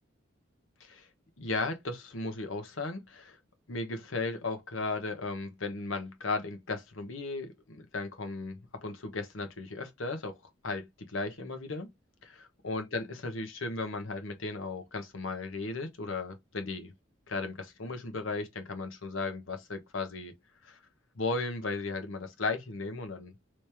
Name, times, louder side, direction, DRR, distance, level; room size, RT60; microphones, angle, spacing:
voice 1, 1.4-3.4 3.7-11.9 12.2-12.3 12.6-16.9 17.3-20.3 20.6-20.8 21.1-23.3, left 3 dB, 80° left, 0.9 m, -36 dB
3.1 x 2.9 x 3.3 m
head